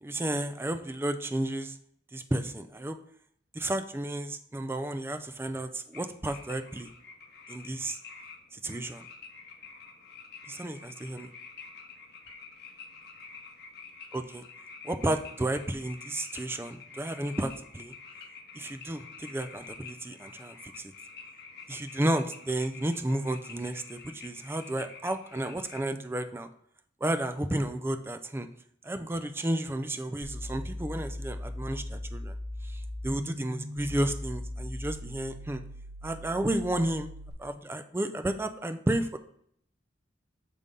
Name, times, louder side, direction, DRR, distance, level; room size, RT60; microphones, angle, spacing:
voice 1, 0.0-1.8 2.1-3.0 3.5-6.9 7.5-8.0 8.5-9.0 10.5-11.3 14.1-14.4 14.8-17.9 18.5-20.9 21.7-26.5 27.0-28.5 28.8-32.3 32.6-35.6 36.0-37.1 37.4-39.2, right 1 dB, 15° right, 8 dB, 0.4 m, -32 dB
sound 1, 5.9-25.8, left 5 dB, 55° left, 1.0 m, -48 dB
sound 2, 30.2-37.3, left 1 dB, 65° right, 1.3 m, -39 dB
6.7 x 3.7 x 5.3 m, 0.67 s
head